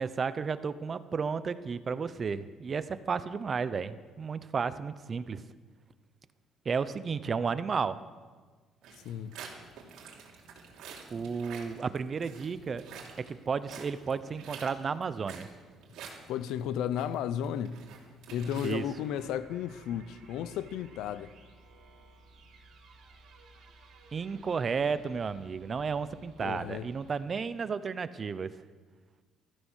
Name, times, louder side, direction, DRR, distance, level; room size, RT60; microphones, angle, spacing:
voice 1, 0.0-5.4 6.6-8.0 11.1-12.8 13.2-15.5 18.6-18.8 24.1-28.5, right 5 dB, 35° right, 0.8 m, -33 dB
sound 1, 8.8-19.3, right 5 dB, 80° right, 3.2 m, -49 dB
voice 2, 9.0-9.4 16.3-17.8 18.3-21.3 26.4-26.9, left 9 dB, 85° left, 0.7 m, -34 dB
sound 2, 18.8-27.2, right 3 dB, 60° right, 3.5 m, -57 dB
15.5 x 13.5 x 6.4 m
cardioid pair, 115°, 0 cm